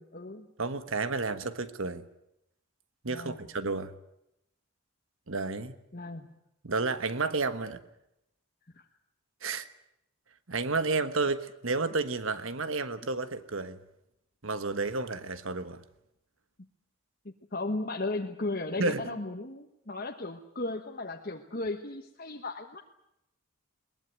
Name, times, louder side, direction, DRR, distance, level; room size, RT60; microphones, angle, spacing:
voice 1, 0.0-0.5 3.1-3.4 5.9-6.3 8.7-8.8 17.5-22.8, left 2 dB, 40° left, 1.3 m, -35 dB
voice 2, 0.6-2.1 3.0-3.9 5.3-5.7 6.6-7.8 9.4-9.7 10.5-13.8 14.4-15.8 18.8-19.2, right 3 dB, 65° right, 1.3 m, -31 dB
22.0 x 20.0 x 9.3 m
head